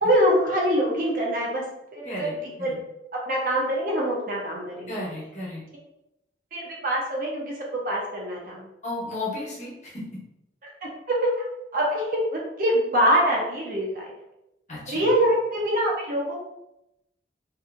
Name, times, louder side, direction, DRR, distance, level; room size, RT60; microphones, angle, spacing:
voice 1, 0.0-1.6 1.9-2.8 3.3-4.9 6.5-8.7 11.1-11.3 11.7-14.1 14.9-16.4, equal, 50° right, -2 dB, 0.7 m, -24 dB
voice 2, 2.0-2.8 4.9-5.6 8.8-10.2 14.7-15.1, left 2 dB, 40° left, -5 dB, 0.9 m, -34 dB
2.6 x 2.6 x 2.5 m, 0.87 s
head